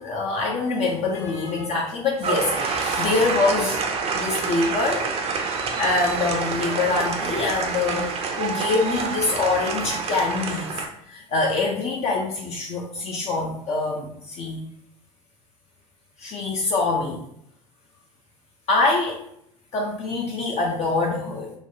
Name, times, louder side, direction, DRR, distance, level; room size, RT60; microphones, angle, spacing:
voice 1, 0.0-3.8 4.1-5.1 5.8-8.1 8.4-10.7 11.1-14.6 16.2-17.2 18.7-19.2 19.7-21.5, left 3 dB, 40° left, -1 dB, 0.5 m, -24 dB
sound 1, 2.2-10.9, right 5 dB, 35° right, 0.5 m, -27 dB
3.1 x 2.2 x 2.6 m, 0.72 s
hypercardioid pair, 75°, 17 cm